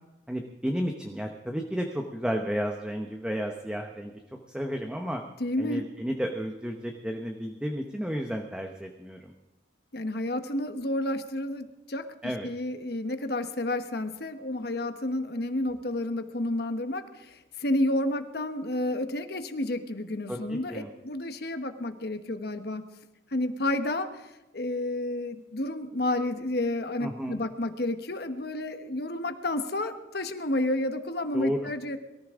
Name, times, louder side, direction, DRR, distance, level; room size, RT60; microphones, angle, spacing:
voice 1, 0.3-5.2 5.6-9.3 12.2-12.5 20.3-20.9 27.0-27.4 31.3-31.7, equal, 5° right, 2 dB, 0.9 m, -32 dB
voice 2, 5.4-5.8 9.9-12.1 12.4-22.8 23.3-32.0, left 1 dB, 60° left, 8 dB, 1.1 m, -30 dB
23.0 x 14.0 x 3.7 m, 1.0 s
head